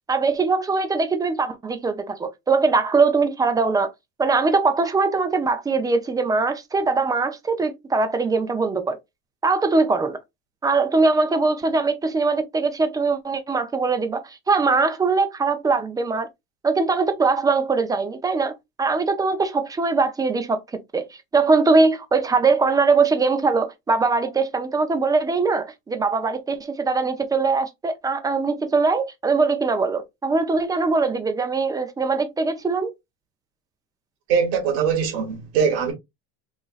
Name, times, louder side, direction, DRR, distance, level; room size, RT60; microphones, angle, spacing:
voice 1, 0.1-3.9 4.2-9.0 9.4-10.2 10.6-16.3 16.6-18.5 18.8-32.9, right 4 dB, 10° right, 0.4 m, -21 dB
voice 2, 34.3-35.9, right 6 dB, 80° right, 1.9 m, -21 dB
3.9 x 2.9 x 2.3 m
cardioid pair, 140°, 32 cm